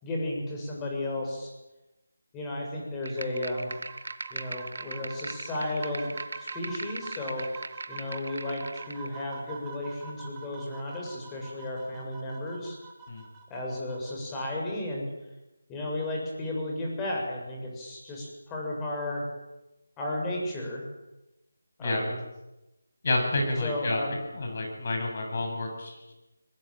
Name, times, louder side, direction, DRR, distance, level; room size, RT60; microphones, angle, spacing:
voice 1, 0.0-1.5 2.3-3.7 4.3-6.1 6.5-7.5 7.9-12.8 13.5-15.1 15.7-19.2 20.0-20.8 21.8-22.2 23.6-24.2, left 1 dB, 10° left, -2 dB, 7.1 m, -33 dB
sound 1, 3.0-9.1, right 3 dB, 65° right, 1.6 m, -40 dB
sound 2, 3.2-14.1, right 4 dB, 15° right, 3.7 m, -46 dB
voice 2, 23.0-26.1, left 2 dB, 45° left, 3 dB, 7.7 m, -30 dB
22.5 x 21.5 x 9.0 m, 1.0 s
figure-of-eight pair, 160°, 0 cm